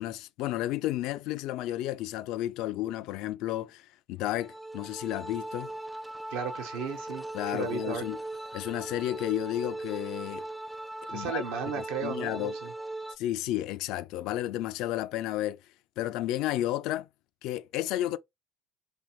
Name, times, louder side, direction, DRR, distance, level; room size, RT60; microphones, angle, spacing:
voice 1, 0.0-5.7 7.3-8.2 8.5-10.5 11.0-11.4 11.8-12.6 13.2-15.6 16.0-17.1 17.4-18.2, left 14 dB, 65° left, 0.3 m, -32 dB
sound 1, 4.2-13.2, right 2 dB, 5° right, 0.5 m, -39 dB
voice 2, 6.3-8.0 11.1-12.7, right 6 dB, 70° right, 1.1 m, -35 dB
3.6 x 3.2 x 3.0 m
hypercardioid pair, 65°, 0 cm